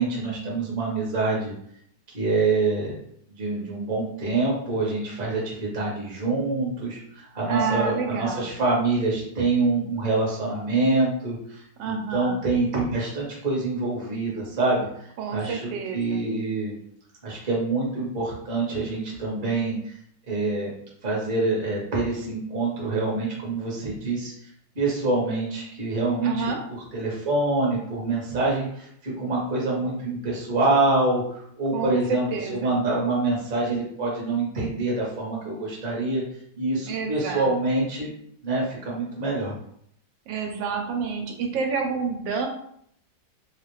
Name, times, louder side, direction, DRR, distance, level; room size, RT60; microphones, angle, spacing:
voice 1, 0.0-1.5 2.1-3.0 3.4-16.7 17.2-20.0 20.2-20.7 21.0-24.3 24.7-26.4 26.9-32.2 32.5-36.2 36.6-38.1 38.4-39.5, right 3 dB, 35° right, -4 dB, 0.9 m, -26 dB
voice 2, 7.5-8.5 11.8-12.4 15.2-16.2 26.2-26.6 31.7-32.7 36.9-37.5 40.3-42.5, right 5 dB, 85° right, 3 dB, 1.3 m, -29 dB
3.0 x 2.4 x 3.0 m, 0.68 s
omnidirectional pair, 1.9 m